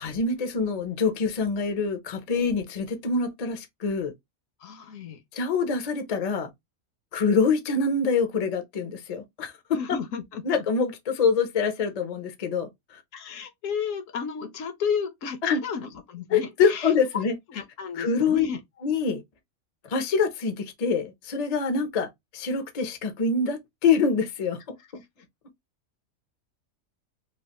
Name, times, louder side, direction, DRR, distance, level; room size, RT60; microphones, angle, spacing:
voice 1, 0.0-4.1 5.3-6.5 7.1-9.8 10.4-13.0 15.4-15.6 16.3-17.3 18.0-18.5 18.8-19.2 19.9-25.0, left 5 dB, 50° left, 0.4 m, -25 dB
voice 2, 4.6-5.2 9.7-10.4 13.1-17.2 17.5-18.6, left 6 dB, 70° left, 1.0 m, -33 dB
3.1 x 2.4 x 2.8 m
omnidirectional pair, 1.5 m